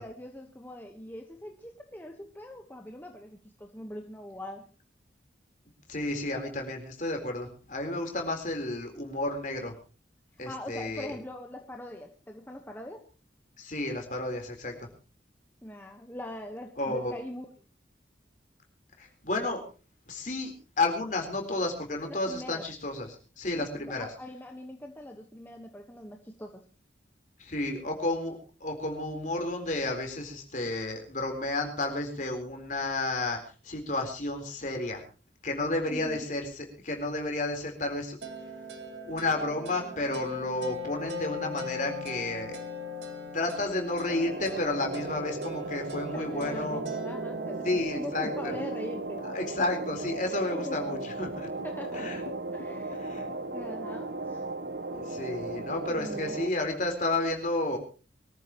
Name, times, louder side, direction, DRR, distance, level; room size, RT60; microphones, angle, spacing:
voice 1, 0.0-4.7 10.4-13.1 15.6-17.5 22.1-22.6 23.5-26.6 35.8-36.3 46.1-49.2 50.5-50.8 51.6-52.1 52.5-53.0 53.5-54.4 55.5-56.4, left 1 dB, 10° left, 3 dB, 1.2 m, -42 dB
voice 2, 5.9-9.7 10.4-11.2 13.6-14.9 16.8-17.2 19.0-19.6 20.1-24.1 27.4-35.0 35.4-38.2 39.0-42.6 43.3-46.8 47.6-48.6 49.3-51.5 51.9-52.2 53.0-53.3 54.9-57.8, left 2 dB, 45° left, 3 dB, 4.0 m, -32 dB
sound 1, 38.2-47.8, left 2 dB, 75° right, 2.4 m, -39 dB
sound 2, 44.1-56.5, right 3 dB, 60° right, 1.0 m, -36 dB
sound 3, 48.3-53.5, left 3 dB, 80° left, 1.4 m, -45 dB
24.0 x 14.0 x 3.0 m, 0.34 s
head